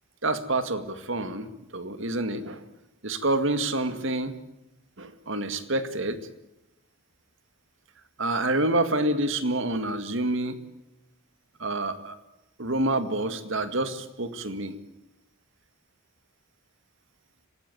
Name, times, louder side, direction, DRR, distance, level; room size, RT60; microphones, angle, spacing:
voice 1, 0.2-1.5 1.7-2.6 3.0-4.4 5.0-6.2 8.2-10.6 11.6-12.2 12.6-14.8, right 2 dB, 65° right, 11 dB, 2.0 m, -27 dB
25.5 x 18.5 x 9.4 m, 0.91 s
head